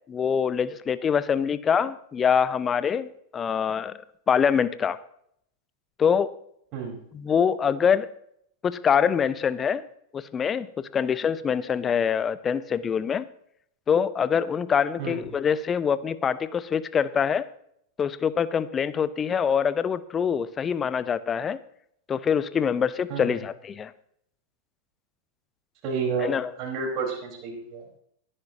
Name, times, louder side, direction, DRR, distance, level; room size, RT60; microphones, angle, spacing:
voice 1, 0.1-4.0 4.3-5.0 6.0-6.3 7.1-8.1 8.6-9.8 10.1-13.3 13.9-17.5 18.0-21.6 22.1-23.9 26.2-26.5, left 7 dB, 20° left, 16 dB, 0.7 m, -24 dB
voice 2, 6.7-7.0 15.0-15.2 23.1-23.3 25.8-27.9, right 5 dB, 40° right, -1 dB, 4.7 m, -30 dB
20.0 x 11.0 x 2.9 m, 0.69 s
figure-of-eight pair, 90°, 0 cm